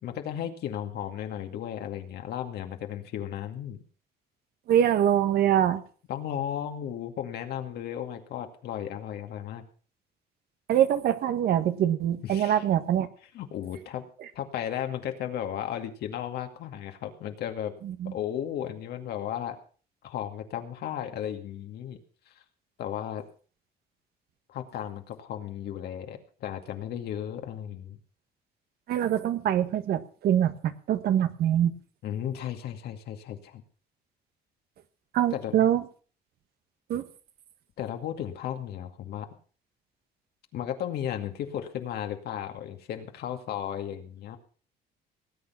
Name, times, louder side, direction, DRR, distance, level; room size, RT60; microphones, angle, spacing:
voice 1, 0.0-3.8 6.1-9.6 12.2-12.6 13.3-14.0 14.3-17.7 18.1-19.6 20.0-22.0 22.3-22.4 22.8-23.2 24.5-28.0 32.0-33.6 35.3-35.7 37.8-39.3 40.5-44.4, left 10 dB, 70° left, 6 dB, 2.2 m, -35 dB
voice 2, 4.7-5.8 10.7-13.1 17.8-18.1 28.9-31.7 35.1-35.8 36.9-37.0, right 10 dB, 65° right, 10 dB, 1.5 m, -24 dB
18.5 x 8.9 x 5.8 m, 0.41 s
cardioid pair, 110°, 17 cm